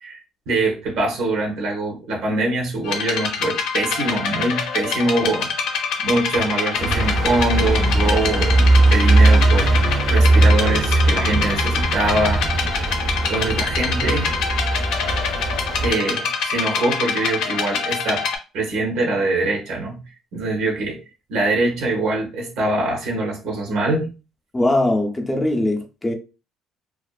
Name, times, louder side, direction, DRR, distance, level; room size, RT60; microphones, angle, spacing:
voice 1, 0.0-9.7 10.1-12.9 13.2-14.3 15.8-18.2 18.5-20.0 20.3-21.0 21.3-24.1, right 2 dB, 80° right, 0.8 m, -23 dB
sound 1, 2.8-18.4, left 6 dB, 75° left, 0.5 m, -25 dB
sound 2, 6.8-15.9, right 2 dB, 40° right, 0.6 m, -19 dB
voice 2, 24.5-26.1, left 1 dB, 15° left, 0.5 m, -21 dB
2.4 x 2.3 x 2.3 m
cardioid pair, 115°, 0 cm